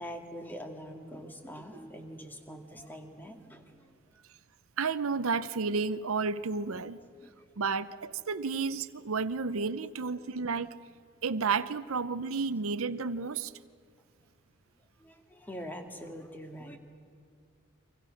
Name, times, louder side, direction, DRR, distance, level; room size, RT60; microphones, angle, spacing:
voice 1, 0.0-4.0 7.2-7.3 15.0-16.8, equal, 10° left, 4 dB, 2.0 m, -44 dB
voice 2, 4.8-7.0 7.6-10.8 11.2-13.5, right 4 dB, 85° right, 14 dB, 0.7 m, -31 dB
29.5 x 24.5 x 6.5 m, 2.2 s
head